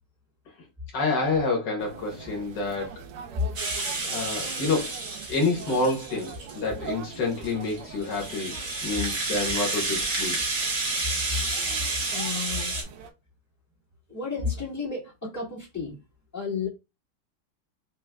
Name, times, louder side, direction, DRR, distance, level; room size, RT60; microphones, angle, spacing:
voice 1, 0.9-3.0 4.0-4.9 5.3-8.5 8.8-10.4, left 3 dB, 75° left, 1.8 m, -28 dB
sound 1, 1.8-13.1, right 7 dB, 85° right, 1.4 m, -43 dB
Rattle (instrument), 3.6-6.6 7.1-12.8, right 3 dB, 50° right, 1.6 m, -30 dB
voice 2, 12.1-12.8 14.1-15.9 16.3-16.7, left 5 dB, 10° left, 1.5 m, -32 dB
6.0 x 2.5 x 2.3 m
omnidirectional pair, 1.9 m